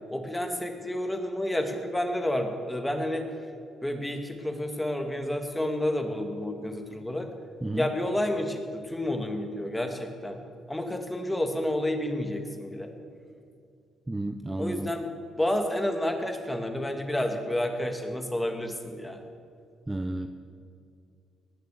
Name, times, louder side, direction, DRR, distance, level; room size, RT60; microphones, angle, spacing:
voice 1, 0.1-3.3 3.8-7.3 7.7-10.4 10.7-12.9 14.6-15.1 15.4-19.2, left 1 dB, 10° left, 5 dB, 1.8 m, -30 dB
voice 2, 14.1-14.9 19.9-20.3, right 2 dB, 15° right, 7 dB, 0.7 m, -31 dB
19.0 x 6.6 x 8.2 m, 2.3 s
cardioid pair, 90°, 0 cm